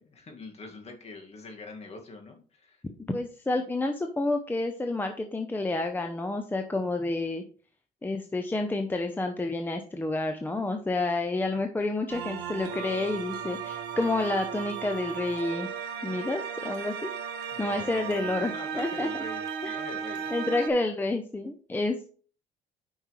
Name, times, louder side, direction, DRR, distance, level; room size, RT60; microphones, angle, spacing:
voice 1, 0.0-2.8 17.5-20.3, left 3 dB, 40° left, 3 dB, 2.0 m, -44 dB
voice 2, 3.0-7.4 8.0-15.7 16.0-16.9 17.6-19.1 19.6-19.8 20.3-22.1, left 2 dB, 10° left, 5 dB, 0.7 m, -29 dB
sound 1, 12.1-20.7, right 7 dB, 80° right, 1.5 m, -35 dB
9.2 x 5.4 x 3.2 m, 0.42 s
cardioid pair, 110°, 17 cm